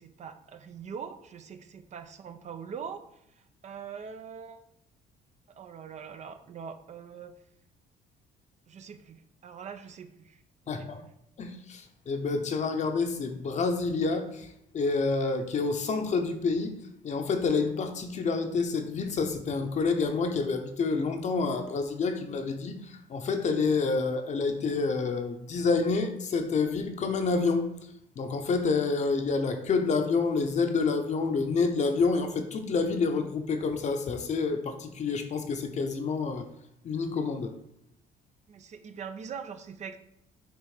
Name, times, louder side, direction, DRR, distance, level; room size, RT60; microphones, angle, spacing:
voice 1, 0.0-3.0 3.3-4.6 5.6-7.3 8.7-11.1 38.5-40.0, right 7 dB, 45° right, 8 dB, 0.6 m, -43 dB
voice 2, 10.7-11.0 11.4-14.5 14.7-16.7 17.0-27.7 28.2-36.4 36.8-37.5, left 4 dB, 45° left, 6 dB, 0.8 m, -28 dB
6.7 x 3.4 x 4.9 m, 0.79 s
cardioid pair, 110°, 17 cm